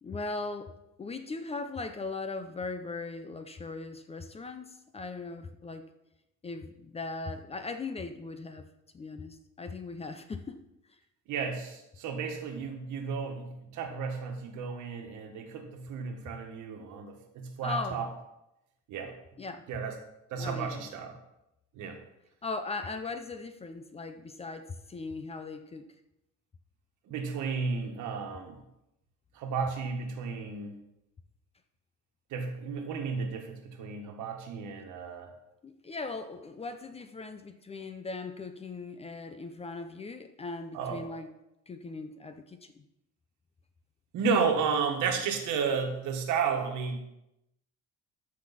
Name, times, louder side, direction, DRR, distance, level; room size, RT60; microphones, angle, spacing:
voice 1, 0.0-5.9 6.4-8.7 8.9-10.6 10.9-11.0 17.6-18.1 19.4-19.6 20.3-21.0 22.4-25.9 35.6-41.3 41.7-42.9, left 3 dB, 20° left, 9 dB, 0.5 m, -39 dB
voice 2, 11.3-18.1 18.9-19.1 19.7-19.9 20.3-21.2 21.7-22.0 27.1-28.6 29.3-30.7 32.3-35.3 40.7-41.0 44.1-47.0, right 5 dB, 75° right, 4 dB, 1.6 m, -33 dB
14.0 x 5.8 x 4.2 m, 0.87 s
cardioid pair, 155°, 31 cm